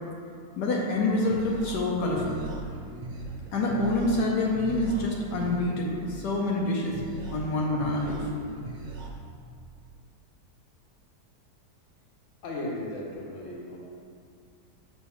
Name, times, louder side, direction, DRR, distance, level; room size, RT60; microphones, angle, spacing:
voice 1, 0.6-2.4 3.5-7.0 7.3-8.3, left 2 dB, 75° left, -2 dB, 1.4 m, -27 dB
sound 1, 0.9-9.1, right 3 dB, 50° right, 0.6 m, -40 dB
voice 2, 12.4-13.8, left 1 dB, 50° left, -2 dB, 1.4 m, -35 dB
6.5 x 6.3 x 3.5 m, 2.3 s
omnidirectional pair, 1.8 m